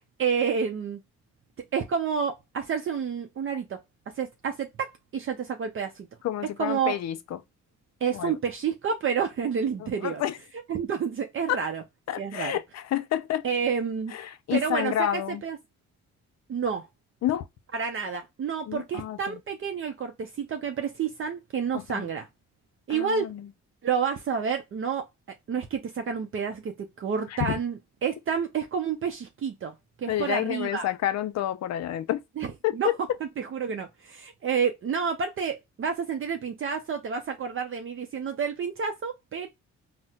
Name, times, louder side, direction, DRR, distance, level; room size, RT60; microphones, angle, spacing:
voice 1, 0.2-1.0 1.7-3.8 4.1-6.1 6.6-7.0 8.0-10.2 10.7-11.8 12.2-12.6 13.4-14.1 14.5-15.6 16.5-16.9 17.7-22.3 22.9-23.3 23.8-25.1 25.5-30.9 32.4-32.5 32.7-32.9 33.4-39.5, right 6 dB, 45° right, 0.6 m, -29 dB
voice 2, 6.2-7.4 8.1-8.4 9.8-10.4 11.5-11.6 12.1-13.5 14.1-15.4 17.2-17.5 18.7-19.4 21.7-22.1 22.9-23.5 27.3-27.5 30.1-32.2 32.6-33.0, left 12 dB, 60° left, 0.5 m, -29 dB
4.1 x 2.1 x 2.3 m
cardioid pair, 90°, 30 cm